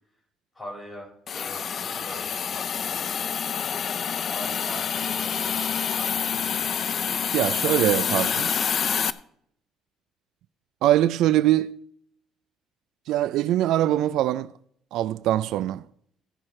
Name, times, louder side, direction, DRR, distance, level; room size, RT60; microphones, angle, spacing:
voice 1, 0.5-3.1 4.3-7.5, equal, 15° left, 5.4 m, -43 dB
Hiss, 1.3-9.1, left 7 dB, 40° left, 0.5 m, -27 dB
voice 2, 7.3-8.5 10.8-11.8 13.1-14.5 14.9-15.8, right 13 dB, 75° right, 0.3 m, -22 dB
16.0 x 6.4 x 4.3 m
cardioid pair, 125°, 0 cm